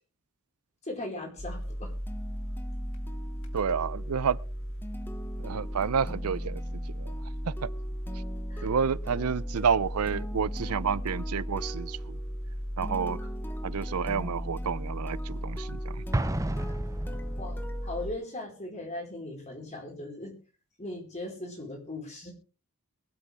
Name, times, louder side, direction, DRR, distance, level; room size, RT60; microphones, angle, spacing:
voice 1, 0.8-1.9 8.5-8.7 17.4-20.4 20.8-22.3, left 2 dB, 30° left, 4.8 m, -38 dB
sound 1, 1.4-18.1, equal, 60° left, 2.4 m, -36 dB
sound 2, 2.1-18.7, equal, 10° left, 0.9 m, -45 dB
voice 2, 3.5-4.4 5.4-6.6 7.0-7.1 7.5-7.7 8.6-12.2 12.8-13.2 13.6-16.0, right 6 dB, 85° right, 0.5 m, -29 dB
Explosion, 16.1-17.7, right 1 dB, 15° right, 0.5 m, -31 dB
22.5 x 8.2 x 3.5 m
head